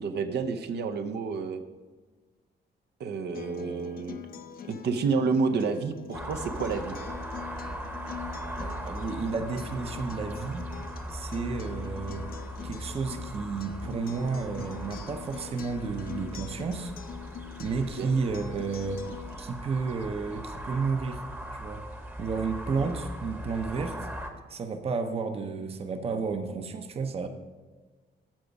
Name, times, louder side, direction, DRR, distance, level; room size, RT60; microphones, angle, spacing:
voice 1, 0.0-1.6 3.0-4.2 4.7-7.0 18.0-18.2, right 4 dB, 70° right, 7 dB, 0.7 m, -29 dB
Acoustic guitar, 3.3-19.4, left 8 dB, 55° left, 0.7 m, -44 dB
sound 1, 6.1-24.3, equal, 10° right, 0.9 m, -39 dB
voice 2, 8.6-10.7 11.1-12.3 12.6-16.9 17.6-19.1 19.4-21.2 21.6-21.8 22.2-24.1 24.5-27.3, right 4 dB, 35° right, 7 dB, 0.7 m, -32 dB
15.0 x 5.0 x 5.3 m, 1.4 s
wide cardioid pair, 175°, 18 cm